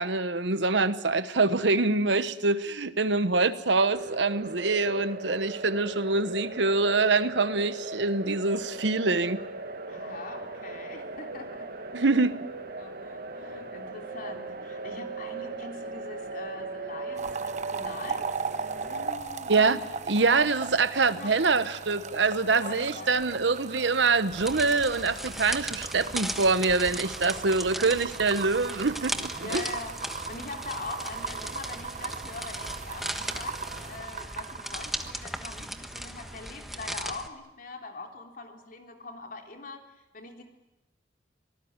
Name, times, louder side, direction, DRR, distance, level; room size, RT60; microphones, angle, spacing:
voice 1, 0.0-9.4 11.9-12.3 19.5-19.8 20.1-29.6, right 3 dB, 75° right, 13 dB, 1.2 m, -25 dB
sound 1, 3.9-19.1, right 3 dB, 55° right, 1.9 m, -38 dB
voice 2, 9.9-11.8 12.8-19.8 20.1-20.4 21.1-21.3 22.6-23.2 29.4-40.4, left 3 dB, 50° left, 4 dB, 3.6 m, -42 dB
sound 2, 17.1-36.1 36.4-36.7, right 5 dB, 40° right, 1.0 m, -38 dB
sound 3, 24.3-37.3, equal, ahead, 1.4 m, -37 dB
25.0 x 19.0 x 9.7 m, 0.98 s
head